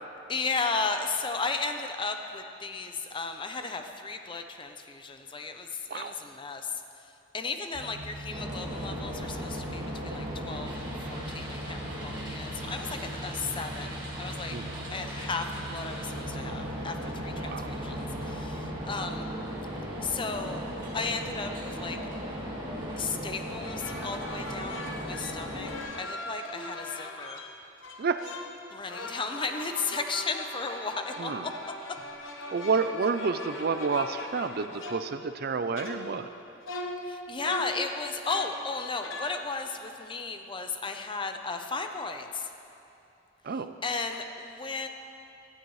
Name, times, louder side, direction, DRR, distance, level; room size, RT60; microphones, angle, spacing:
voice 1, 0.3-6.7 7.3-14.6 14.9-19.3 20.0-20.6 20.9-22.0 23.0-25.7 26.0-27.4 28.7-31.5 37.1-42.5 43.8-44.9, left 4 dB, 25° left, 6 dB, 0.7 m, -34 dB
sound 1, 7.7-18.6, right 1 dB, 50° left, 2.7 m, -41 dB
sound 2, 8.3-25.8, equal, 25° right, 2.1 m, -37 dB
voice 2, 17.4-17.7 28.0-28.2 31.2-31.5 32.5-36.3 43.4-43.7, right 5 dB, 55° right, 10 dB, 0.5 m, -29 dB
sound 3, 23.6-27.5 27.8-28.6 28.9-35.4 35.8-36.4 36.6-38.6 39.0-39.4, left 1 dB, 85° left, 1.3 m, -40 dB
16.5 x 13.0 x 3.2 m, 2.7 s
head